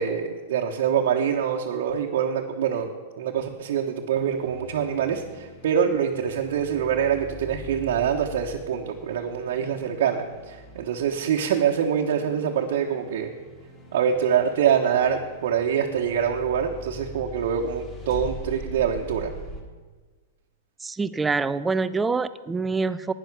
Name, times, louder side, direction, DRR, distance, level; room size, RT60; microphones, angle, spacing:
voice 1, 0.0-13.3 13.9-19.3, right 8 dB, 70° right, -1 dB, 1.1 m, -25 dB
sound 1, 4.1-19.6, left 1 dB, 20° left, 2.2 m, -43 dB
voice 2, 20.8-23.1, right 4 dB, 10° right, 14 dB, 0.4 m, -25 dB
11.0 x 9.9 x 6.1 m, 1.4 s
hypercardioid pair, 140°, 0 cm